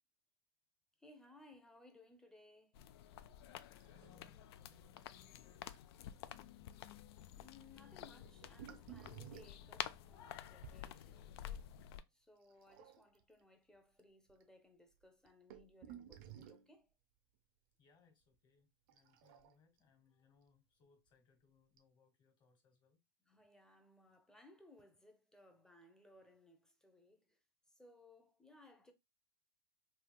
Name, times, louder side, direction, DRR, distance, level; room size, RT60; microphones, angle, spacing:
voice 1, 1.0-2.8 7.4-11.7 12.1-16.9 23.2-27.4 27.7-28.9, left 2 dB, 5° left, 0.6 m, -64 dB
sound 1, 2.7-12.0, left 11 dB, 70° left, 0.4 m, -50 dB
sound 2, 3.7-4.3 4.6-4.7 5.0-5.2 5.7-5.8 8.2-10.8 12.5-13.2 14.0-14.1 14.3-14.4 15.0-16.7 18.9-19.8 21.1-21.2 21.8-21.9, right 10 dB, 55° right, 0.6 m, -55 dB
voice 2, 3.9-6.9 17.8-23.0, left 4 dB, 35° left, 1.4 m, -72 dB
3.3 x 2.8 x 2.2 m
hypercardioid pair, 115°, 14 cm